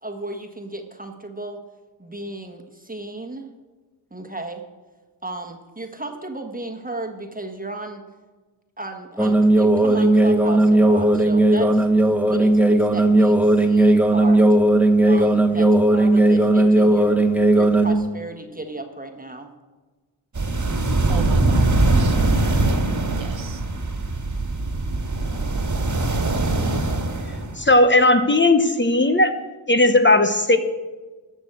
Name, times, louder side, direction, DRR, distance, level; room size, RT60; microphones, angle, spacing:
voice 1, 0.0-1.6 2.0-3.5 4.1-4.6 5.2-8.0 8.8-11.9 12.2-14.4 15.1-17.2 17.5-19.5, right 2 dB, 20° right, 4 dB, 1.4 m, -34 dB
sound 1, 9.2-17.9, right 1 dB, 5° right, 1.0 m, -16 dB
sound 2, 20.3-27.6, right 2 dB, 40° right, 1.7 m, -22 dB
voice 2, 21.1-22.6 23.1-23.6, right 6 dB, 80° right, 10 dB, 1.0 m, -35 dB
voice 3, 27.6-29.3 29.7-30.6, left 2 dB, 25° left, 8 dB, 0.9 m, -16 dB
13.5 x 6.2 x 7.9 m, 1.3 s
wide cardioid pair, 70°, 45 cm